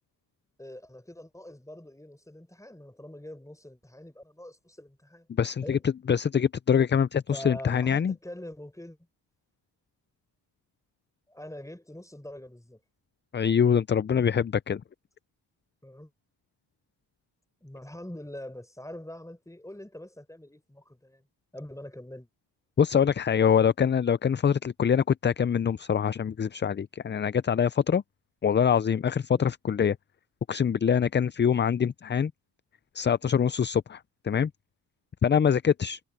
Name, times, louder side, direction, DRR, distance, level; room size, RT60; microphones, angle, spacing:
voice 1, 0.6-5.3 5.6-5.8 7.3-9.0 11.3-12.8 15.8-16.1 17.6-21.3 21.5-22.3 29.4-29.5, left 1 dB, 5° left, 4.3 m, -44 dB
voice 2, 5.3-8.1 13.3-14.8 22.8-28.0 28.4-30.0 30.5-32.3 32.9-34.5 35.2-36.0, left 7 dB, 25° left, 0.4 m, -24 dB
cardioid pair, 60°, 46 cm